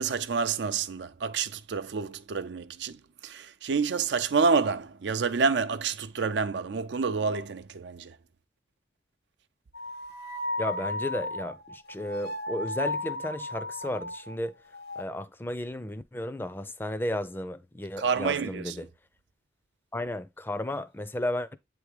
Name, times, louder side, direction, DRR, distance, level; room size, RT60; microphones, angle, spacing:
voice 1, 0.0-8.2 18.0-18.9, right 5 dB, 90° right, 0.5 m, -28 dB
sound 1, 9.7-14.3 14.7-15.0, left 1 dB, 65° left, 0.7 m, -35 dB
voice 2, 10.6-14.6 15.0-18.9 19.9-21.6, left 1 dB, 10° left, 0.4 m, -33 dB
8.3 x 3.5 x 3.2 m
head